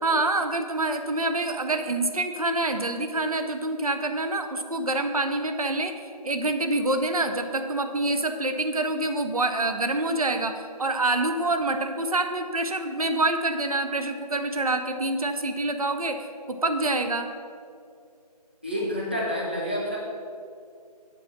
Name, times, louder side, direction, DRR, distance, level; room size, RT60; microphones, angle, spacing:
voice 1, 0.0-10.5 10.8-17.3, right 2 dB, 60° right, 7 dB, 0.6 m, -26 dB
voice 2, 18.6-20.0, equal, 15° right, -4 dB, 0.6 m, -28 dB
7.8 x 4.9 x 5.8 m, 2.4 s
figure-of-eight pair, 170°, 21 cm